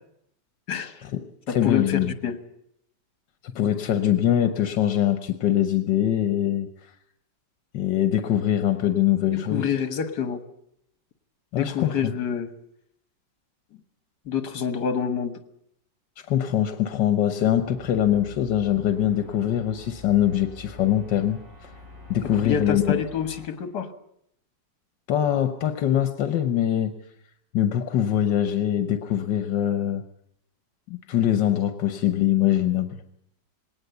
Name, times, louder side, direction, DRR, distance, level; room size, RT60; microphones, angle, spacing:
voice 1, 0.7-1.0 1.5-2.4 9.3-10.4 11.6-12.5 14.3-15.4 22.2-23.9, left 7 dB, 70° left, 10 dB, 2.0 m, -27 dB
voice 2, 1.5-2.1 3.4-6.7 7.7-9.7 11.5-12.1 16.3-21.7 22.1-23.0 25.1-26.9 27.5-30.0 30.9-32.9, left 11 dB, 85° left, 9 dB, 1.7 m, -23 dB
sound 1, 17.6-23.5, left 3 dB, 30° right, 3.9 m, -45 dB
19.5 x 18.5 x 8.1 m, 0.73 s
omnidirectional pair, 1.9 m